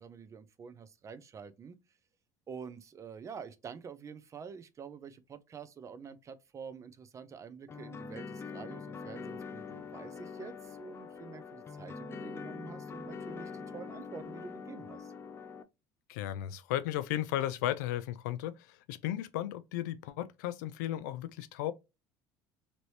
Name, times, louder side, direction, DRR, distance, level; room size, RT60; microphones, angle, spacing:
voice 1, 0.0-1.8 2.5-15.1, right 6 dB, 35° right, 0.5 m, -47 dB
sound 1, 7.7-15.6, left 5 dB, 25° left, 0.4 m, -44 dB
voice 2, 16.1-21.7, left 13 dB, 90° left, 0.4 m, -35 dB
3.1 x 3.0 x 2.7 m
supercardioid pair, 100°, 10 cm